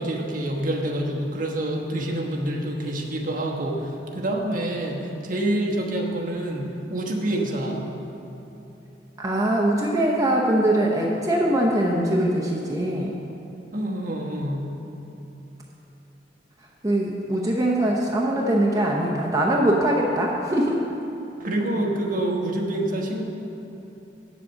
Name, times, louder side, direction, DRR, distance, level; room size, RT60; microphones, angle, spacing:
voice 1, 0.0-7.9 13.7-14.6 21.4-23.2, right 1 dB, 50° right, -1 dB, 1.1 m, -27 dB
voice 2, 9.2-13.1 16.8-20.8, right 1 dB, 20° right, -2 dB, 0.7 m, -22 dB
8.2 x 7.3 x 6.4 m, 3.0 s
head